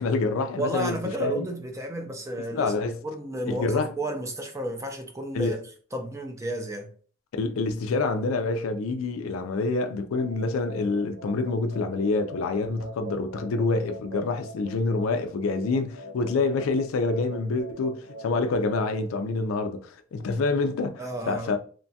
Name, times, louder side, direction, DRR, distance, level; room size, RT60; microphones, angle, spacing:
voice 1, 0.0-1.5 2.5-2.9 3.5-3.9 5.3-5.6 7.3-21.6, left 3 dB, 80° left, 0.4 m, -27 dB
voice 2, 0.5-2.7 3.0-5.6 5.9-6.9 21.0-21.6, right 1 dB, 15° right, 0.4 m, -32 dB
sound 1, 10.1-18.4, right 1 dB, 80° right, 0.5 m, -43 dB
2.9 x 2.2 x 2.7 m
head